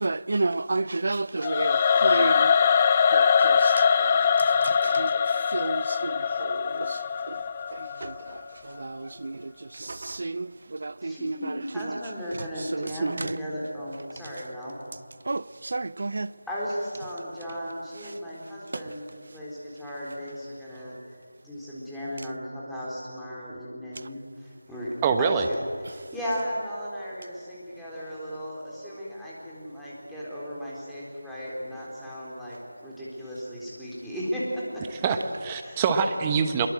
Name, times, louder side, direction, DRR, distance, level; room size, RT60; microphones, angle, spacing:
voice 1, 0.0-2.5 3.1-3.7 4.0-4.1 4.6-5.1 5.5-6.1 6.4-7.0 7.3-7.4 8.0-8.1 8.8-9.5 9.8-12.0 12.7-13.4 15.3-16.3 18.7-18.8, right 3 dB, 55° right, 0.7 m, -31 dB
Singing / Musical instrument, 1.4-8.5, left 6 dB, 20° left, 0.5 m, -22 dB
voice 2, 11.0-14.8 16.5-21.0 21.4-24.9 25.2-25.6 25.9-34.8 35.6-35.8, equal, ahead, 3.8 m, -35 dB
voice 3, 25.0-25.5 35.0-36.7, right 6 dB, 15° right, 1.2 m, -24 dB
26.0 x 22.5 x 7.8 m
figure-of-eight pair, 170°, 0 cm